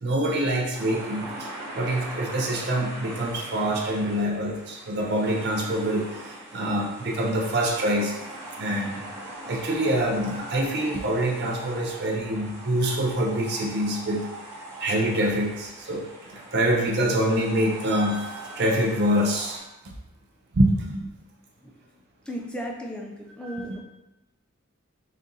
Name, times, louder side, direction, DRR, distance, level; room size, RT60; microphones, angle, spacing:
voice 1, 0.0-1.5 1.8-8.1 8.6-9.0 9.5-14.3 14.8-19.6 20.5-21.1 23.4-23.8, right 1 dB, 50° right, 0 dB, 0.5 m, -25 dB
sound 1, 0.7-19.6, right 2 dB, 15° right, 1.3 m, -41 dB
voice 2, 22.3-23.8, equal, 5° left, -1 dB, 0.5 m, -35 dB
4.2 x 2.5 x 3.7 m, 0.96 s
head